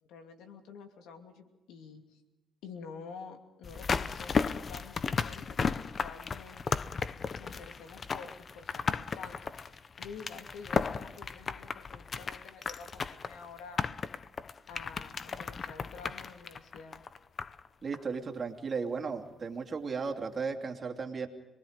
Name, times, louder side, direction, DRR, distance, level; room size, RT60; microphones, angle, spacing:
voice 1, 0.0-2.2 2.6-6.8 7.4-9.7 10.0-13.8 14.7-17.0, left 5 dB, 90° left, 5 dB, 2.7 m, -49 dB
sound 1, 3.6-17.7 17.9-18.0, left 5 dB, 45° left, 0.7 m, -35 dB
voice 2, 17.8-21.3, right 5 dB, 40° right, 3 dB, 2.9 m, -35 dB
26.5 x 20.5 x 5.2 m, 1.1 s
cardioid pair, 90°, 0 cm